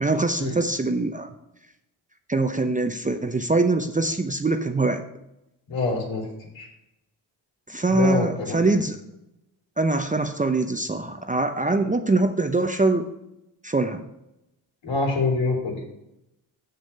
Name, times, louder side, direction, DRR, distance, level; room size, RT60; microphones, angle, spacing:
voice 1, 0.0-1.3 2.3-5.0 7.7-9.0 9.8-13.1 13.6-14.0, right 3 dB, 15° right, 7 dB, 0.6 m, -23 dB
voice 2, 5.7-6.3 6.5-6.7 7.9-8.8 14.8-15.8, left 3 dB, 65° left, -1 dB, 3.1 m, -26 dB
6.9 x 6.6 x 5.5 m, 0.89 s
cardioid pair, 65°, 48 cm